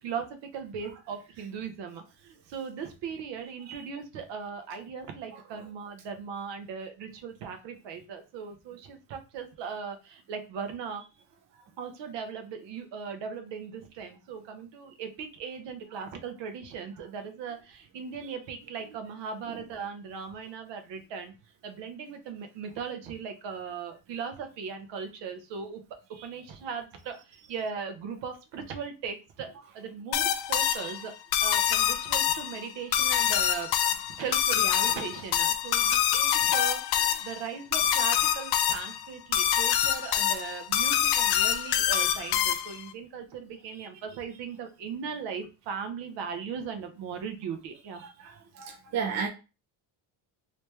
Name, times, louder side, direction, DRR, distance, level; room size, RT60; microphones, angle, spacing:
voice 1, 0.0-11.1 11.8-21.3 21.6-25.8 26.1-29.5 29.7-31.1 31.4-33.7 34.2-48.0, right 6 dB, 60° right, 6 dB, 0.9 m, -38 dB
sound 1, 30.1-42.9, left 10 dB, 55° left, 0.5 m, -26 dB
voice 2, 48.6-49.3, right 6 dB, 35° right, 3 dB, 0.5 m, -31 dB
3.0 x 3.0 x 3.3 m, 0.30 s
cardioid pair, 150°, 49 cm